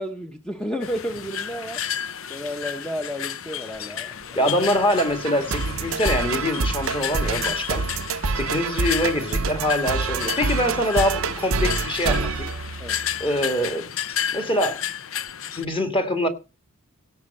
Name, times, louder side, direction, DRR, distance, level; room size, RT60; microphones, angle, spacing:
voice 1, 0.0-1.8 2.3-4.5 12.8-13.0, equal, 5° left, 0.9 m, -32 dB
sound 1, 0.8-15.7, left 9 dB, 70° left, 0.7 m, -32 dB
voice 2, 4.3-7.8 8.4-12.5 13.2-13.9 14.3-14.8 15.6-16.3, left 1 dB, 25° left, 2.0 m, -24 dB
sound 2, 4.7-13.3, right 4 dB, 75° right, 0.7 m, -27 dB
16.5 x 6.4 x 5.5 m
head